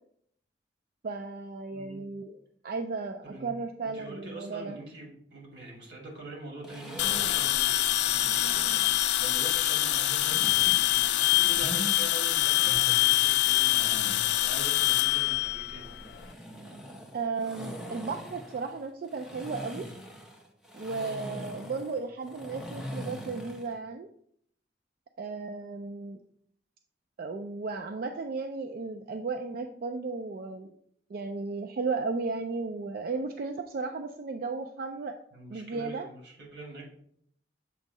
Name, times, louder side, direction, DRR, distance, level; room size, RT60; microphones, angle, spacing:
voice 1, 1.0-2.4 2.6-4.8 17.1-19.9 20.7-24.1 25.2-26.2 27.2-30.8 31.1-35.1 35.5-36.1, right 4 dB, 55° right, 6 dB, 0.3 m, -35 dB
voice 2, 1.7-2.0 3.2-3.5 3.8-15.9 35.3-36.8, right 2 dB, 85° right, -2 dB, 2.5 m, -44 dB
sound 1, 6.6-9.0 10.1-11.9 12.4-14.4 15.8-23.7, equal, 5° right, 0.8 m, -42 dB
sound 2, 7.0-16.2, left 15 dB, 70° left, 0.3 m, -25 dB
7.0 x 2.7 x 5.2 m, 0.66 s
head